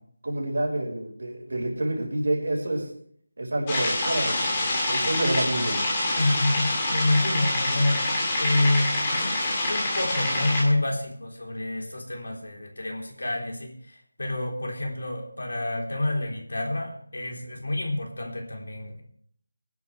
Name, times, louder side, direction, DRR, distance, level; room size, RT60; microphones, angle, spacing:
voice 1, 0.2-2.8 3.4-5.8, right 1 dB, 60° right, 0 dB, 4.9 m, -28 dB
sound 1, 3.7-10.6, left 1 dB, 15° left, 2.7 m, -26 dB
voice 2, 6.2-19.0, left 2 dB, 75° left, 0 dB, 3.5 m, -28 dB
20.5 x 10.5 x 3.3 m, 0.63 s
figure-of-eight pair, 175°, 0 cm